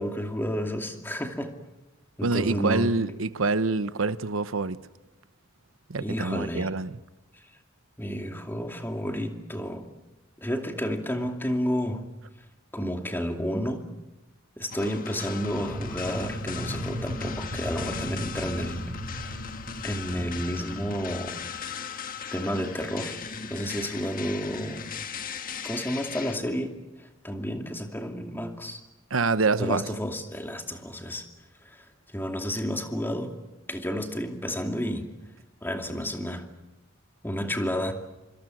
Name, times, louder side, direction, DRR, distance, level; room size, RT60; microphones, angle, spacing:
voice 1, 0.0-1.5 2.2-3.0 6.0-6.7 8.0-9.9 10.4-12.0 12.7-13.9 14.6-18.8 19.1-19.4 19.8-21.4 22.3-23.1 23.4-24.9 25.6-26.7 27.0-28.8 29.6-31.2 31.6-31.8 32.1-33.3 33.7-35.1 35.6-36.5 37.2-37.9, equal, 10° left, 2.5 m, -31 dB
voice 2, 2.2-4.8 5.9-7.0 29.1-29.8, right 3 dB, 90° right, 1.0 m, -26 dB
sound 1, 14.7-26.4, left 6 dB, 45° left, 1.5 m, -38 dB
sound 2, 15.3-21.7, equal, 65° right, 4.3 m, -37 dB
26.0 x 25.5 x 7.9 m
head